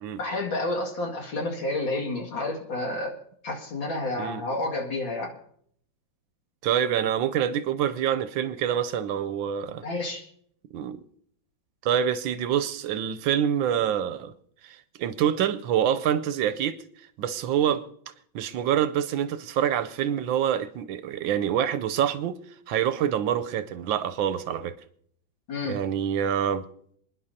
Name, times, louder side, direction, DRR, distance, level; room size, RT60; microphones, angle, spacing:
voice 1, 0.2-3.1 3.4-5.3 9.8-10.2 17.7-17.8 25.5-25.8, left 2 dB, 80° left, 2.9 m, -30 dB
voice 2, 6.6-9.9 10.7-11.0 11.8-14.3 14.6-16.8 17.2-17.9 18.3-22.4 22.7-24.8 25.6-26.6, right 9 dB, 85° right, 1.4 m, -26 dB
28.0 x 10.5 x 2.8 m
omnidirectional pair, 2.1 m